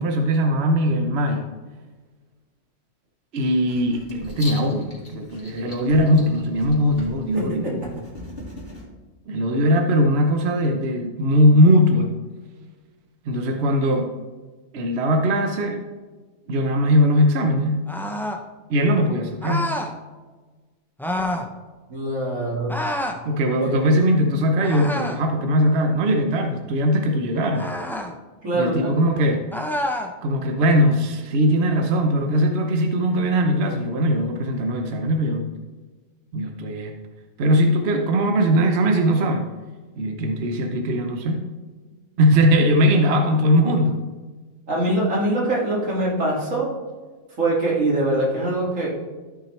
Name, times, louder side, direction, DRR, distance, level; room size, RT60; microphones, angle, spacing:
voice 1, 0.0-1.4 3.3-7.6 9.3-12.1 13.3-14.1 14.7-15.8 16.5-17.8 18.7-19.7 23.2-27.7 28.5-29.4 30.2-35.5 36.3-36.9 37.4-39.5 40.0-41.4 42.2-44.0, equal, 60° right, 4 dB, 1.0 m, -20 dB
Writing, 3.6-8.8, left 1 dB, 50° left, 2.6 m, -39 dB
voice 2, 7.3-7.8 21.9-22.7 23.6-23.7 28.4-28.9 42.9-43.0 44.7-46.8 47.4-48.9, right 1 dB, 90° right, -4 dB, 2.7 m, -23 dB
sound 1, 17.9-18.4 19.4-19.9 21.0-21.5 22.7-23.2 24.6-25.3 27.5-28.1 29.5-30.1, left 1 dB, 5° left, 0.4 m, -28 dB
13.5 x 5.8 x 3.2 m, 1.3 s
omnidirectional pair, 1.3 m